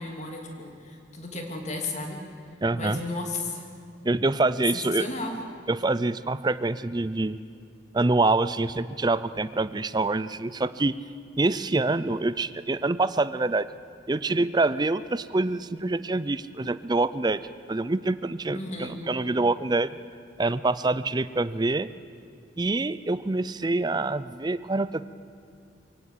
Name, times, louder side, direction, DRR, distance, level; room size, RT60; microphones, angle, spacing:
voice 1, 0.0-2.2 2.7-3.7 4.7-5.4 18.5-19.0, left 2 dB, 40° left, 2 dB, 2.9 m, -34 dB
voice 2, 2.6-3.0 4.0-5.1 5.7-7.4 7.9-10.9 11.4-13.7 14.1-17.4 17.7-20.0 20.4-21.9 22.6-25.0, right 2 dB, 20° right, 15 dB, 0.5 m, -26 dB
23.5 x 17.0 x 8.5 m, 2.5 s
head